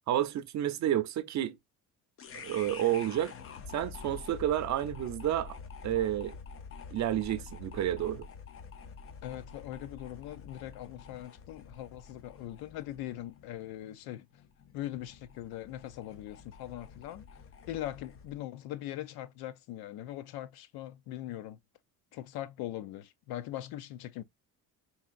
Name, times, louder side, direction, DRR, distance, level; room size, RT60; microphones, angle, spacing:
voice 1, 0.1-1.6 2.3-3.3 3.7-5.6 5.8-6.4 6.9-8.2, right 12 dB, 50° right, 0.6 m, -30 dB
sound 1, 2.2-18.4, left 5 dB, 35° left, 0.6 m, -48 dB
voice 2, 9.2-14.2 14.7-17.3 17.7-21.6 22.1-24.2, left 13 dB, 85° left, 0.6 m, -41 dB
4.7 x 2.8 x 2.4 m
cardioid pair, 110°, 36 cm